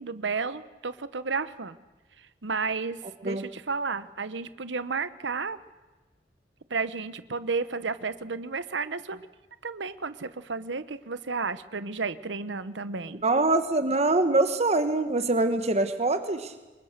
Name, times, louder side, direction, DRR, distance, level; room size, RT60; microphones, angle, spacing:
voice 1, 0.0-1.8 2.2-5.6 6.7-9.3 9.6-13.2, right 4 dB, 80° right, 14 dB, 1.0 m, -32 dB
voice 2, 13.2-16.5, right 2 dB, 35° right, 9 dB, 1.3 m, -24 dB
27.0 x 23.0 x 6.7 m, 1.2 s
head